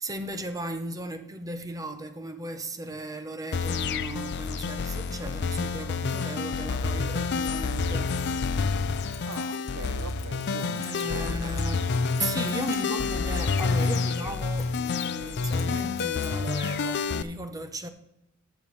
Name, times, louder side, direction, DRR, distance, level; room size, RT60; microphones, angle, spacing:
voice 1, 0.0-8.3 9.3-9.4 10.8-11.9 12.2-17.9, right 2 dB, 15° right, 0.7 m, -36 dB
sound 1, 3.5-17.2, left 4 dB, 55° left, 0.5 m, -28 dB
Keys jangling, 8.7-16.6, left 6 dB, 30° left, 1.3 m, -50 dB
voice 2, 9.3-11.4 11.7-12.0, right 4 dB, 85° right, 0.7 m, -42 dB
14.5 x 7.0 x 3.1 m
head